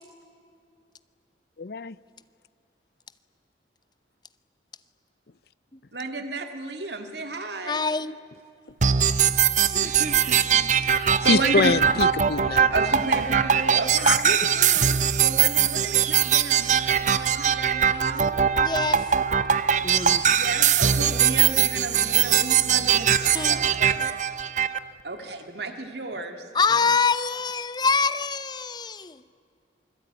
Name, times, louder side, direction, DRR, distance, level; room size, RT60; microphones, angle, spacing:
voice 1, 1.6-1.9 11.3-12.7 14.0-14.2, left 4 dB, 60° left, 0.6 m, -24 dB
voice 2, 5.9-7.9 9.7-11.8 12.7-18.3 20.3-24.1 25.0-26.4, right 3 dB, 70° right, 2.1 m, -33 dB
voice 3, 7.7-8.1 9.8-9.9 18.6-19.1 19.8-20.2 23.3-23.6 26.5-29.2, left 5 dB, 25° left, 0.7 m, -25 dB
sound 1, 8.8-24.8, right 8 dB, 40° right, 0.7 m, -21 dB
27.5 x 21.0 x 9.3 m
head